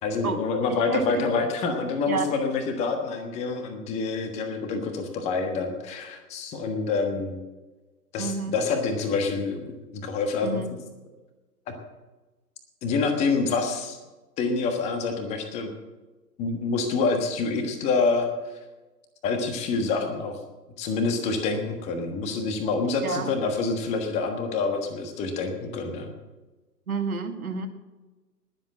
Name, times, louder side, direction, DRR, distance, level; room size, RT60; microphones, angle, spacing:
voice 1, 0.0-7.4 8.1-10.8 11.7-11.8 12.8-14.0 14.4-15.7 16.4-18.3 19.2-20.4 20.8-26.1, left 4 dB, 15° left, 6 dB, 1.4 m, -27 dB
voice 2, 0.7-1.3 2.1-2.4 8.2-8.5 10.4-10.7 23.0-23.3 26.9-27.7, right 5 dB, 60° right, 6 dB, 2.0 m, -30 dB
20.0 x 7.6 x 7.6 m, 1.2 s
figure-of-eight pair, 125°, 48 cm